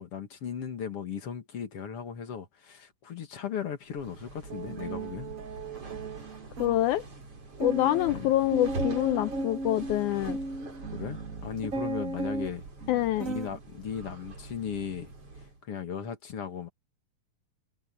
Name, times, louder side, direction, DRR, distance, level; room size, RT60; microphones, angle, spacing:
voice 1, 0.0-5.3 8.1-8.3 10.9-12.6 13.3-15.1 15.6-16.7, left 7 dB, 45° left, 2.7 m, -37 dB
sound 1, 3.9-15.6, right 3 dB, 40° right, 5.9 m, -44 dB
sound 2, 4.5-6.9 7.2-7.3 7.6-13.6 14.0-14.4, right 2 dB, 80° right, 0.7 m, -36 dB
voice 2, 6.6-7.0 7.6-10.4 12.9-13.3, left 14 dB, 85° left, 1.7 m, -26 dB
omnidirectional pair, 4.1 m